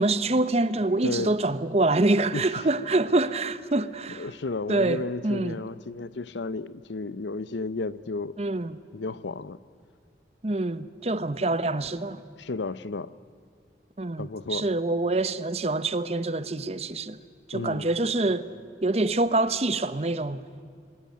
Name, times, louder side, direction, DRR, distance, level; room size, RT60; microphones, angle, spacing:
voice 1, 0.0-4.3 4.7-5.6 8.4-8.8 10.4-12.2 14.0-17.2 17.5-18.5 18.8-20.6, right 2 dB, 35° right, 0.8 m, -26 dB
voice 2, 1.0-1.3 2.3-2.4 4.2-8.4 8.9-9.6 12.4-13.1 14.2-14.7 17.5-17.9, left 3 dB, 90° left, 0.7 m, -33 dB
26.5 x 20.5 x 9.4 m
head